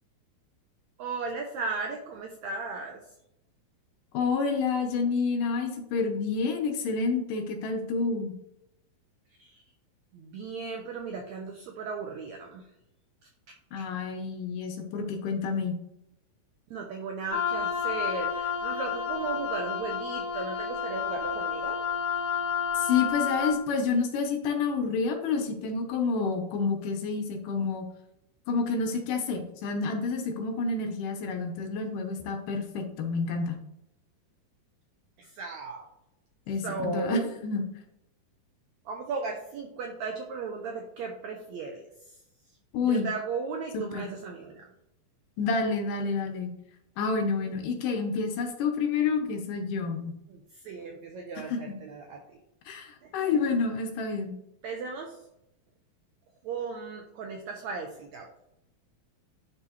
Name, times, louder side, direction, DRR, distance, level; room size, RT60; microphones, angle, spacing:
voice 1, 1.0-3.0 9.4-9.6 10.1-12.7 13.2-13.3 16.7-21.8 35.2-35.9 36.6-37.3 38.8-42.2 42.8-44.7 50.3-52.4 53.0-53.4 54.6-55.3 56.4-58.5, right 4 dB, 90° right, 2 dB, 1.6 m, -36 dB
voice 2, 4.1-8.3 13.7-15.8 22.8-27.9 28.5-33.6 36.5-37.6 42.7-43.1 43.7-44.1 45.4-46.5 47.0-50.1 51.5-51.7 52.7-54.3, left 4 dB, 75° left, 4 dB, 2.3 m, -29 dB
Wind instrument woodwind instrument, 17.3-23.6, left 7 dB, 90° left, 0.9 m, -30 dB
11.0 x 4.0 x 3.0 m, 0.83 s
omnidirectional pair, 4.1 m